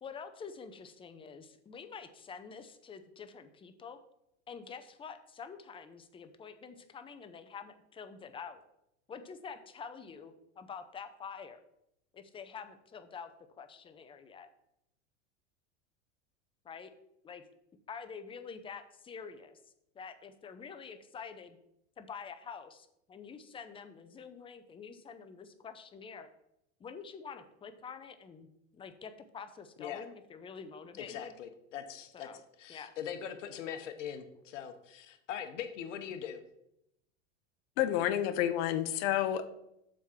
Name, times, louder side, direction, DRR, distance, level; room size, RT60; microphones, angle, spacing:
voice 1, 0.0-4.0 4.5-8.6 9.1-11.6 12.1-13.3 13.6-14.5 16.6-16.9 17.2-17.4 17.9-19.6 19.9-21.6 22.0-26.3 26.8-31.3 32.1-32.4 32.7-32.9, left 6 dB, 15° left, 9 dB, 0.5 m, -47 dB
voice 2, 31.0-32.3 32.6-36.4, left 8 dB, 90° left, 8 dB, 1.0 m, -41 dB
voice 3, 37.8-39.5, left 11 dB, 55° left, 11 dB, 0.8 m, -29 dB
7.4 x 3.7 x 5.7 m, 0.80 s
supercardioid pair, 125°, 36 cm